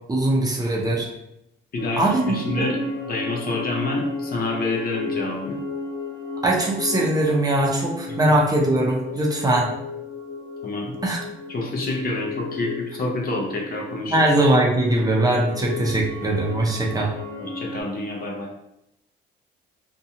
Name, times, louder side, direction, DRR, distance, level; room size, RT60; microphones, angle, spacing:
voice 1, 0.1-1.1 2.0-2.7 6.4-9.7 11.0-11.2 14.1-17.1, right 1 dB, 20° right, -2 dB, 0.6 m, -21 dB
voice 2, 1.7-2.8 3.1-5.6 8.1-8.2 10.6-11.0 11.5-14.2 17.4-18.5, left 2 dB, 50° left, 0 dB, 0.7 m, -28 dB
sound 1, 1.8-17.8, left 3 dB, 85° left, 1.0 m, -34 dB
2.6 x 2.2 x 2.8 m, 0.82 s
cardioid pair, 90°, 20 cm